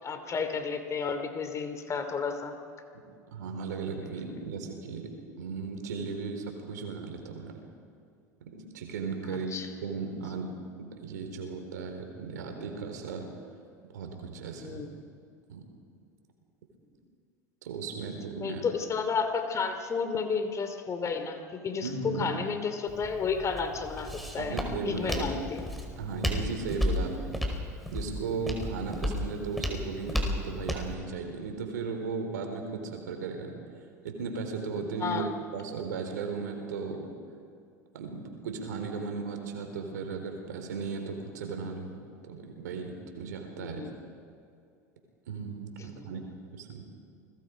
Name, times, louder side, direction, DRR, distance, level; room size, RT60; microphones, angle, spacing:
voice 1, 0.0-2.6 9.3-9.7 14.6-14.9 18.4-25.6 26.9-27.1 35.0-35.3 43.6-44.0 46.0-46.2, left 5 dB, 35° left, 8 dB, 2.9 m, -32 dB
voice 2, 3.3-7.6 8.4-9.6 9.8-13.3 13.8-14.8 15.5-15.6 17.6-18.6 21.8-22.3 24.4-25.2 26.0-27.4 27.9-33.6 34.0-35.3 35.5-37.1 37.9-42.0 42.2-43.8 45.3-46.2 46.5-46.8, right 5 dB, 80° right, 4 dB, 4.0 m, -36 dB
Walk footsteps, 22.9-30.9, equal, ahead, 4.8 m, -33 dB
29.5 x 21.0 x 5.2 m, 2.4 s
hypercardioid pair, 85°, 9 cm